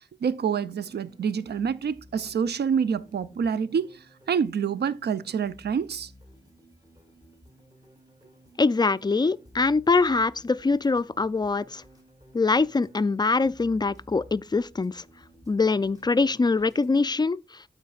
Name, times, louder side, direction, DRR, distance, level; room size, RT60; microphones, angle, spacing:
voice 1, 0.2-4.0 4.3-6.1, right 7 dB, 80° right, 0.5 m, -27 dB
sound 1, 0.6-17.1, right 1 dB, 20° right, 2.4 m, -54 dB
voice 2, 8.6-11.8 12.3-15.0 15.5-17.4, left 3 dB, 25° left, 0.4 m, -23 dB
12.5 x 5.1 x 2.4 m
cardioid pair, 50°, 17 cm